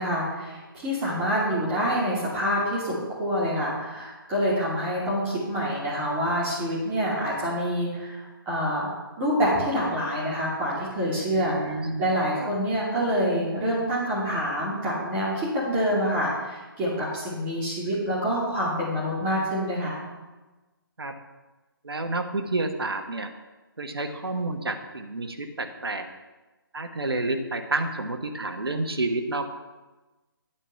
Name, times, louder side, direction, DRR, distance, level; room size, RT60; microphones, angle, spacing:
voice 1, 0.0-8.9 9.2-20.0, equal, 15° right, -7 dB, 2.8 m, -26 dB
voice 2, 11.3-12.1 12.4-12.5 21.0-21.2 21.8-23.3 23.8-26.1 26.7-29.5, right 2 dB, 80° right, 6 dB, 1.2 m, -29 dB
9.2 x 4.6 x 6.8 m, 1.2 s
figure-of-eight pair, 155°, 12 cm